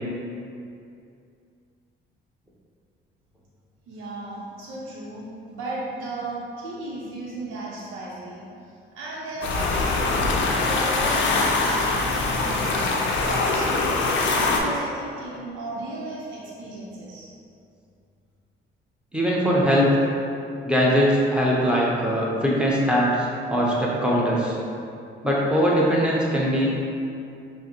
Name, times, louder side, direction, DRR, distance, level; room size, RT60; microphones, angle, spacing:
voice 1, 3.9-12.9 13.2-13.9 14.3-17.3, right 2 dB, 90° right, -7 dB, 0.8 m, -35 dB
sound 1, 9.4-14.6, left 3 dB, 70° left, 0.5 m, -23 dB
voice 2, 19.1-20.1 20.6-24.6 25.2-26.7, equal, 5° right, -5 dB, 0.8 m, -21 dB
5.4 x 2.1 x 2.9 m, 2.5 s
cardioid pair, 90°, 20 cm